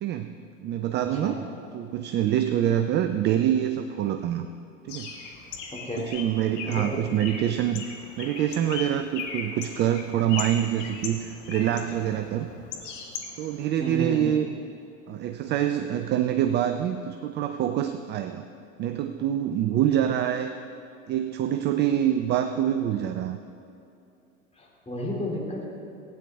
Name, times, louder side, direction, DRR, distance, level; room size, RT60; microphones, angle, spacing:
voice 1, 0.0-1.4 1.7-4.5 4.8-5.1 6.0-7.9 8.2-12.5 13.4-14.5 15.1-18.4 18.8-20.5 21.1-23.4, right 11 dB, 25° right, 8 dB, 0.4 m, -26 dB
Bird, 4.9-13.6, left 5 dB, 60° left, 1.7 m, -38 dB
voice 2, 5.7-6.1 6.7-7.0 13.8-14.3 19.9-20.1 24.6-25.7, equal, 15° left, -2 dB, 2.7 m, -32 dB
16.0 x 9.1 x 3.5 m, 2.7 s
figure-of-eight pair, 85°, 40 cm